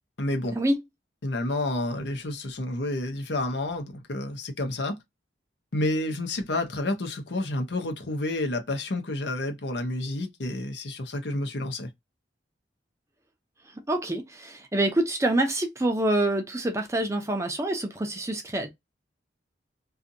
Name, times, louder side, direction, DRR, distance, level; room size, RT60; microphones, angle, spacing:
voice 1, 0.2-0.6 1.2-5.0 5.7-11.9, left 2 dB, 75° left, 0.7 m, -30 dB
voice 2, 13.9-18.7, right 1 dB, 15° right, 0.5 m, -26 dB
2.6 x 2.5 x 2.6 m
head